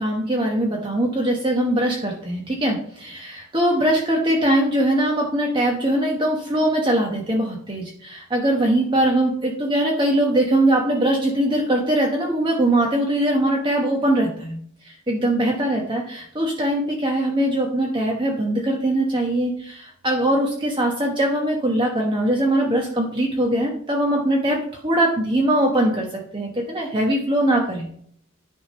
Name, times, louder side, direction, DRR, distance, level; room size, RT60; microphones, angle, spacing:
voice 1, 0.0-14.6 14.8-26.1 26.3-27.9, right 1 dB, 25° right, -1 dB, 1.1 m, -21 dB
10.0 x 3.7 x 5.3 m, 0.62 s
head